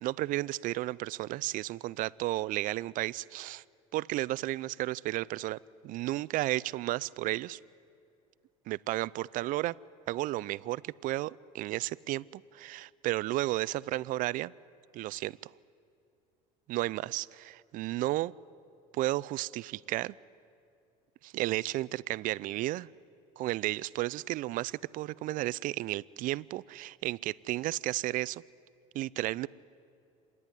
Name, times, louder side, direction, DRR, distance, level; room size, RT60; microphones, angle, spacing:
voice 1, 0.0-3.6 3.9-5.6 5.8-7.6 8.7-9.8 10.1-14.5 14.9-15.5 16.7-18.3 18.9-20.2 21.2-22.9 23.4-28.4 28.9-29.5, right 17 dB, 50° right, 0.4 m, -33 dB
27.0 x 10.5 x 9.8 m
supercardioid pair, 110°, 18 cm